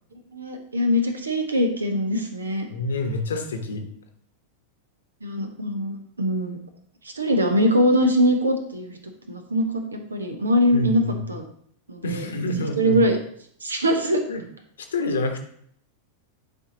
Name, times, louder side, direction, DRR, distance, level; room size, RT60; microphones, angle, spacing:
voice 1, 0.3-2.7 5.2-6.6 7.0-9.0 9.3-11.0 11.3-11.4 11.9-12.3 12.8-13.2 13.6-14.2, equal, 75° right, 6 dB, 1.0 m, -22 dB
voice 2, 2.7-3.8 10.7-11.2 12.0-13.1 14.3-14.4 14.9-15.4, left 2 dB, 65° left, 5 dB, 1.1 m, -27 dB
10.5 x 4.5 x 2.8 m, 0.64 s
figure-of-eight pair, 90°, 0 cm